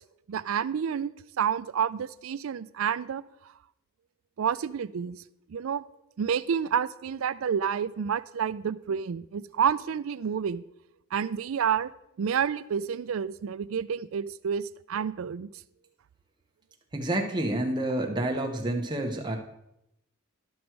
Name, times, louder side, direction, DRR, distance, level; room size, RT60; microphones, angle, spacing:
voice 1, 0.3-3.2 4.4-5.2 5.5-5.8 6.2-10.6 11.1-11.9 12.2-15.5, right 7 dB, 85° right, 17 dB, 0.4 m, -29 dB
voice 2, 16.9-19.4, right 1 dB, 20° right, 2 dB, 1.1 m, -29 dB
12.0 x 6.2 x 4.6 m, 0.81 s
head